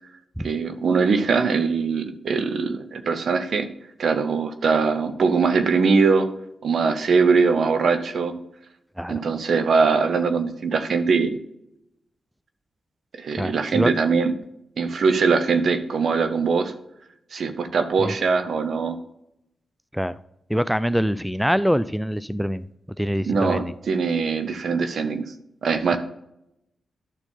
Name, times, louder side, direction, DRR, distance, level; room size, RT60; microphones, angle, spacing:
voice 1, 0.4-3.7 4.0-6.3 6.6-8.3 9.1-11.4 13.2-14.3 14.8-16.7 17.3-19.0 23.3-25.2 25.6-26.0, right 5 dB, 70° right, 9 dB, 0.9 m, -21 dB
voice 2, 13.4-13.9 18.0-18.1 19.9-20.2 20.5-22.7 23.0-23.7, equal, ahead, 16 dB, 0.4 m, -24 dB
12.0 x 4.4 x 4.4 m, 0.82 s
supercardioid pair, 40°, 0 cm